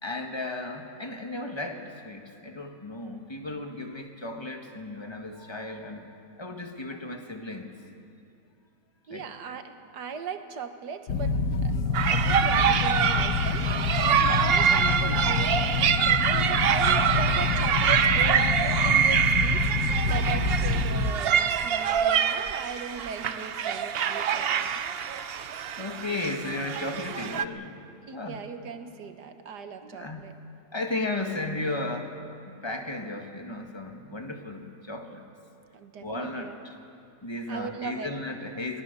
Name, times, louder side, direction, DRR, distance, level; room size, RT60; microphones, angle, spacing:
voice 1, 0.0-7.8 9.1-9.3 25.0-27.8 28.1-28.4 29.8-30.3 30.7-32.1 32.4-35.2 36.0-36.8 37.2-38.8, left 2 dB, 15° left, 3 dB, 1.6 m, -35 dB
voice 2, 9.1-11.3 11.6-13.7 14.0-19.7 20.1-24.8 28.1-30.3 35.7-36.6 37.5-38.1, right 6 dB, 80° right, 8 dB, 1.8 m, -38 dB
sound 1, 11.1-21.1, left 5 dB, 80° left, 1.5 m, -27 dB
sound 2, 11.9-27.4, right 8 dB, 60° right, 0.6 m, -25 dB
24.5 x 18.5 x 6.8 m, 2.6 s
omnidirectional pair, 1.7 m